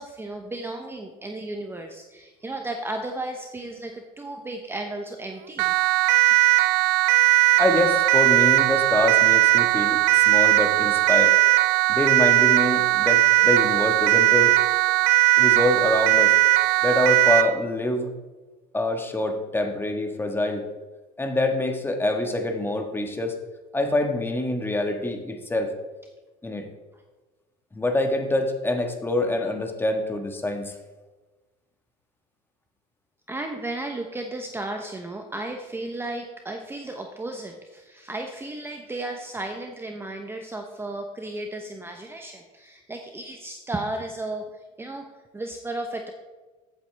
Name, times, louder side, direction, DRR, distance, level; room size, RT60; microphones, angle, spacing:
voice 1, 0.0-5.8 33.3-44.5 44.8-46.1, right 2 dB, 10° right, 4 dB, 0.8 m, -34 dB
Siren, 5.6-17.6, right 20 dB, 80° right, 0.5 m, -19 dB
voice 2, 7.6-11.4 11.9-14.6 15.4-16.4 16.8-18.1 18.7-20.7 21.2-23.4 23.7-25.7 26.4-26.7 27.7-30.7, left 1 dB, 10° left, 4 dB, 1.4 m, -25 dB
14.0 x 8.3 x 3.4 m, 1.2 s
supercardioid pair, 115°, 18 cm